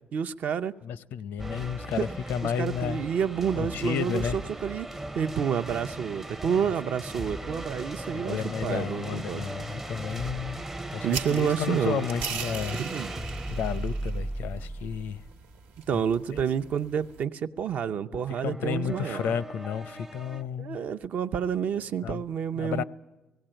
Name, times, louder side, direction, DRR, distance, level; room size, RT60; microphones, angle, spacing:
voice 1, 0.1-0.7 2.0-2.1 2.4-4.9 5.1-9.4 11.0-12.1 12.8-13.1 15.9-19.3 20.6-22.8, right 7 dB, 55° right, 0.7 m, -29 dB
voice 2, 0.8-3.0 3.6-4.4 8.1-10.6 10.9-12.8 13.5-15.2 15.9-16.0 16.3-16.4 18.4-20.8 22.0-22.2 22.6-22.8, left 8 dB, 80° left, 0.6 m, -32 dB
sound 1, 1.4-16.4 18.1-20.4, right 1 dB, 10° right, 0.6 m, -37 dB
sound 2, 11.1-17.2, right 6 dB, 80° right, 1.3 m, -41 dB
17.5 x 17.0 x 9.0 m
cardioid pair, 125°, 3 cm